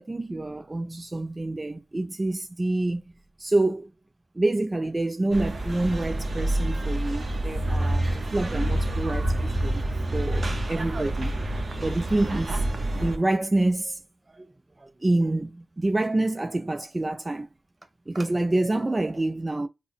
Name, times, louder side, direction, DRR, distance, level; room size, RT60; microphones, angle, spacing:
voice 1, 0.0-3.0 3.4-3.9 4.4-9.8 10.1-11.4 11.8-12.6 12.9-14.0 14.3-14.5 14.8-17.5 18.1-19.7, right 2 dB, 25° right, 0.3 m, -27 dB
sound 1, 5.3-13.2, right 1 dB, 40° right, 0.7 m, -27 dB
3.8 x 2.0 x 3.3 m
cardioid pair, 70°, 0 cm